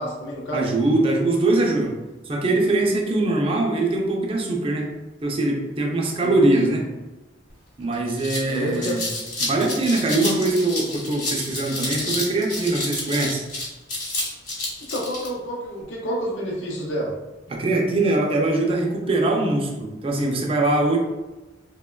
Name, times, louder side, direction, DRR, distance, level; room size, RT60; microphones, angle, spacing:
voice 1, 0.0-0.7 6.2-6.8 8.5-9.0 14.9-17.1, equal, 75° left, -2 dB, 0.5 m, -29 dB
voice 2, 0.5-1.9 2.3-4.9 5.2-6.8 7.8-9.0 9.4-13.4 17.5-21.0, right 2 dB, 30° right, 0 dB, 0.4 m, -22 dB
sound 1, 7.5-7.6 7.9-15.3, left 2 dB, 45° left, 0.9 m, -29 dB
2.9 x 2.1 x 2.2 m, 1.1 s
head